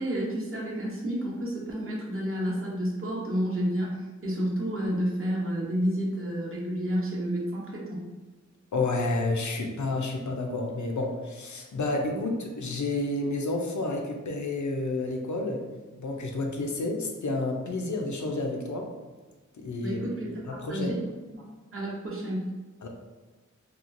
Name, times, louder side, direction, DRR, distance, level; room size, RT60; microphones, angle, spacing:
voice 1, 0.0-8.1 12.1-12.2 19.8-21.0 21.3-21.4 21.7-22.5, equal, 45° right, -4 dB, 0.8 m, -30 dB
voice 2, 8.7-15.7 16.0-18.9 19.5-20.0 20.5-20.9 22.8-22.9, left 2 dB, 75° left, 2 dB, 0.5 m, -30 dB
2.9 x 2.3 x 2.5 m, 1.3 s
wide cardioid pair, 70°, 30 cm